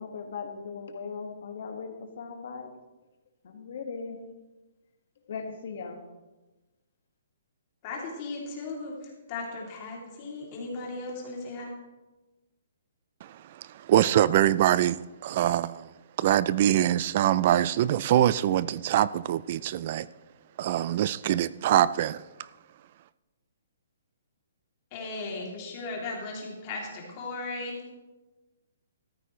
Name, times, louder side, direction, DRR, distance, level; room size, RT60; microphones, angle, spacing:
voice 1, 0.0-2.7 3.4-4.2 5.2-6.0, left 5 dB, 50° left, 4 dB, 1.7 m, -38 dB
voice 2, 7.8-8.9 9.3-11.7 24.9-27.8, left 3 dB, 25° left, -2 dB, 2.8 m, -36 dB
voice 3, 13.2-15.9 16.2-20.1 20.6-22.2, right 12 dB, 30° right, 18 dB, 0.3 m, -24 dB
14.0 x 13.5 x 3.1 m, 1.1 s
hypercardioid pair, 175°, 0 cm